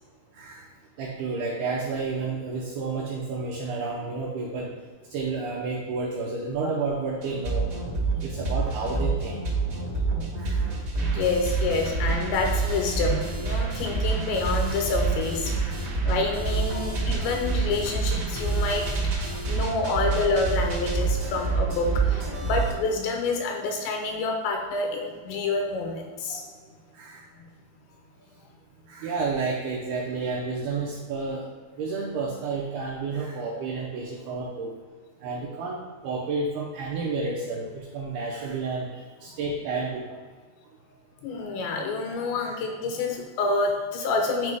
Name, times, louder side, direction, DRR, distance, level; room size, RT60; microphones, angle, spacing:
voice 1, 1.0-4.7 5.1-7.7 8.2-9.4 10.4-10.7 15.5-15.8 21.3-21.5 26.9-27.2 28.9-31.5 31.8-34.7 35.2-40.2 42.4-42.6, right 4 dB, 80° right, -4 dB, 2.3 m, -31 dB
sound 1, 7.2-22.7, right 3 dB, 60° right, 1.2 m, -27 dB
voice 2, 10.9-15.5 16.0-26.4 27.4-27.5 41.2-44.6, left 3 dB, 85° left, 2 dB, 2.7 m, -28 dB
11.0 x 4.8 x 2.2 m, 1.5 s
omnidirectional pair, 5.3 m